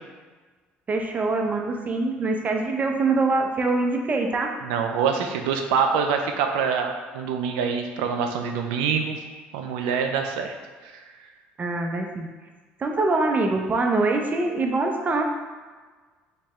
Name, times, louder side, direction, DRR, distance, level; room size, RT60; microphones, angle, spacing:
voice 1, 0.9-4.5 11.6-12.3 12.8-15.2, right 3 dB, 35° right, 2 dB, 0.5 m, -24 dB
voice 2, 4.6-9.2 9.5-10.5 10.8-11.0, right 6 dB, 85° right, 4 dB, 0.4 m, -25 dB
3.4 x 2.8 x 3.1 m, 1.4 s
supercardioid pair, 75°, 5 cm